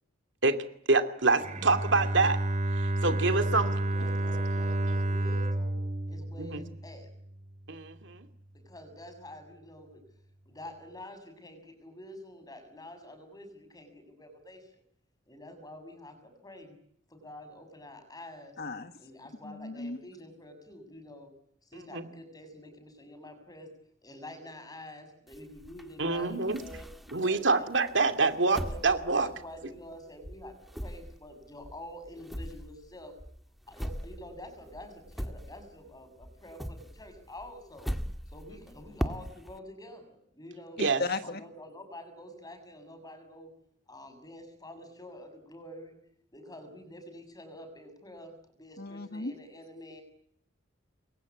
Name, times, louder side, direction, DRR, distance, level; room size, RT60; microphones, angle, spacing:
voice 1, 0.9-2.4 2.8-3.7 6.4-6.6 7.7-8.3 21.9-22.0 26.0-26.6 27.1-29.3 40.8-41.0, right 3 dB, 65° right, 7 dB, 2.6 m, -26 dB
Bowed string instrument, 1.4-7.4, right 1 dB, 40° right, 3.5 m, -30 dB
voice 2, 3.1-5.8 6.0-7.1 8.5-10.0 10.5-14.8 15.3-16.8 17.1-18.6 19.0-21.3 21.6-23.7 24.0-27.7 28.5-33.1 33.7-37.9 38.3-40.8 41.2-43.5 43.9-46.0 46.3-50.0, left 1 dB, 20° left, 9 dB, 7.0 m, -47 dB
voice 3, 18.6-18.9 19.4-20.0 40.8-41.4 48.8-49.3, left 3 dB, 55° left, 8 dB, 1.6 m, -35 dB
sound 1, 25.3-27.4 27.9-30.0 30.2-35.9 36.2-39.6, equal, ahead, 1.7 m, -40 dB
28.0 x 22.5 x 8.6 m, 0.71 s
head